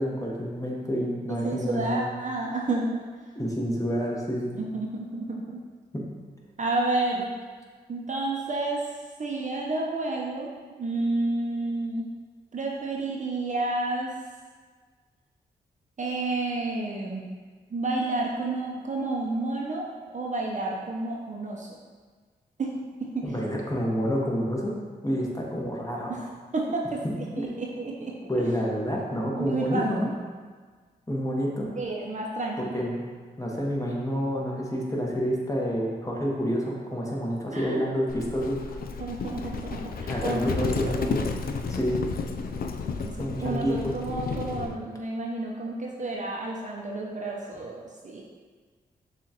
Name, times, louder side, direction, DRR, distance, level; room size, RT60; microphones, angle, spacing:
voice 1, 0.0-2.0 3.4-4.5 5.9-6.0 23.2-24.7 25.0-26.1 27.0-27.5 28.3-30.1 31.1-31.7 32.6-33.0 33.4-38.8 40.1-41.3 41.7-42.1 43.2-43.9, equal, 15° left, -3 dB, 1.2 m, -28 dB
voice 2, 1.4-3.0 4.5-5.6 6.6-7.3 7.9-8.8 9.2-10.5 10.8-12.1 12.5-14.1 16.0-17.2 17.7-21.7 22.6-23.3 26.1-26.3 26.5-27.0 27.4-28.2 29.4-30.1 31.8-32.8 37.5-37.8 39.0-40.8 43.0-48.2, right 2 dB, 40° right, -2 dB, 0.7 m, -30 dB
Livestock farm animals working animals, 38.1-44.8, left 5 dB, 55° left, 0.4 m, -32 dB
6.7 x 2.5 x 2.8 m, 1.5 s
supercardioid pair, 40°, 18 cm